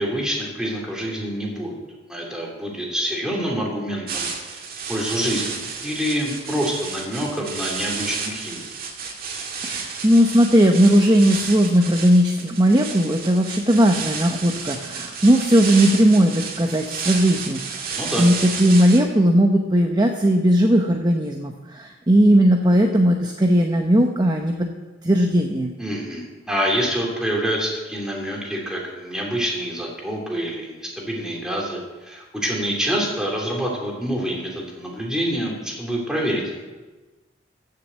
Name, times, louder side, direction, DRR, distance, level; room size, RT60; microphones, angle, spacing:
voice 1, 0.0-1.8 2.1-4.6 4.9-8.7 17.9-18.2 25.8-36.6, equal, 5° right, -2 dB, 2.9 m, -26 dB
sound 1, 4.1-19.0, right 5 dB, 50° right, 2.0 m, -32 dB
voice 2, 9.6-17.9 18.2-24.7 25.0-25.7, equal, 20° right, 3 dB, 0.8 m, -17 dB
14.5 x 6.7 x 7.9 m, 1.2 s
head